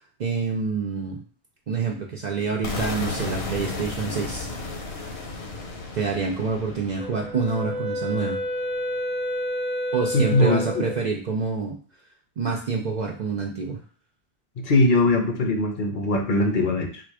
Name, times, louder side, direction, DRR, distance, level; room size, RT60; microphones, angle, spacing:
voice 1, 0.2-1.2 1.7-4.5 5.9-8.4 9.9-11.8 12.4-13.8, right 4 dB, 50° right, 0 dB, 0.6 m, -27 dB
sound 1, 2.6-8.5, left 3 dB, 70° left, 1.2 m, -34 dB
Wind instrument woodwind instrument, 7.0-11.0, equal, 15° left, 0.4 m, -29 dB
voice 2, 10.1-10.9 14.6-17.0, left 2 dB, 55° left, 3 dB, 0.9 m, -21 dB
4.1 x 2.5 x 4.7 m, 0.41 s
omnidirectional pair, 1.1 m